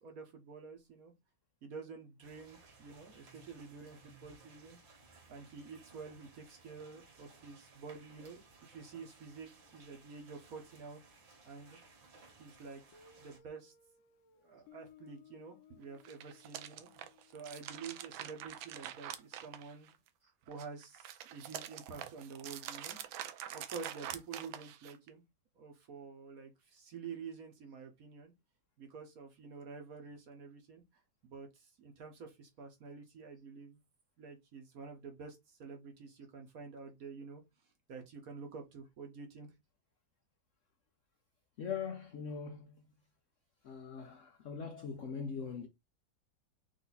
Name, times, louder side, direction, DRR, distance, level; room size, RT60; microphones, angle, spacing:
voice 1, 0.0-1.1 1.6-4.8 5.3-11.0 11.4-11.8 12.4-12.8 13.2-13.7 14.4-16.9 17.3-19.9 20.5-23.0 23.5-25.2 25.6-28.3 28.8-30.8 31.2-33.8 34.2-37.4 37.9-39.5, right 5 dB, 55° right, 1.3 m, -49 dB
sound 1, 2.2-13.4, right 4 dB, 75° right, 2.2 m, -61 dB
Guitar, 12.9-19.6, left 7 dB, 90° left, 1.5 m, -63 dB
sound 2, 15.9-20.1 20.5-25.1, right 11 dB, 90° right, 1.4 m, -45 dB
voice 2, 41.6-42.8 43.6-45.7, left 6 dB, 70° left, 0.7 m, -41 dB
4.8 x 2.7 x 4.0 m
omnidirectional pair, 2.1 m